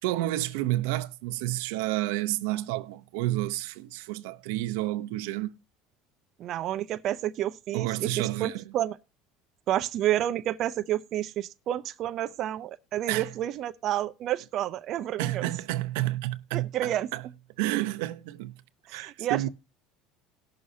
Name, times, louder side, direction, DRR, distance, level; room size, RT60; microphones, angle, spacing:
voice 1, 0.0-5.6 7.7-8.6 13.1-13.3 15.2-17.2 17.6-18.5 18.9-19.5, right 16 dB, 85° right, 0.6 m, -30 dB
voice 2, 6.4-9.0 9.7-15.4 16.5-17.1 18.9-19.5, right 12 dB, 45° right, 0.5 m, -30 dB
18.5 x 6.3 x 2.7 m
cardioid pair, 145°, 0 cm